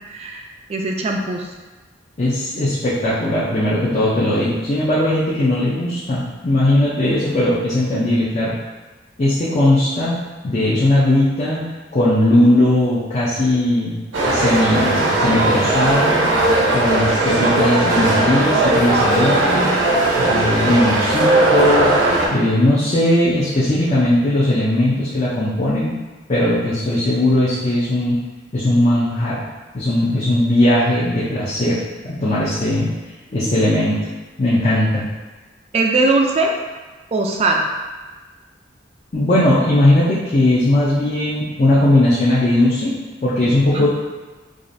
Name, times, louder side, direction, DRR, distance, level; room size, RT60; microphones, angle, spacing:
voice 1, 0.1-0.4 0.7-1.5 35.7-36.5 37.1-37.6 43.7-43.9, right 3 dB, 35° right, 1 dB, 0.3 m, -19 dB
voice 2, 2.2-8.6 9.2-10.2 10.4-11.6 11.9-14.0 14.2-16.2 16.7-19.6 20.2-22.0 22.3-25.9 26.3-28.2 28.5-29.5 29.7-31.8 32.0-32.9 33.3-34.0 34.4-35.1 39.1-43.0 43.2-43.9, left 1 dB, 35° left, -8 dB, 0.5 m, -18 dB
sound 1, 14.1-22.3, right 2 dB, 90° right, 0.7 m, -17 dB
4.8 x 2.4 x 2.6 m, 1.3 s
head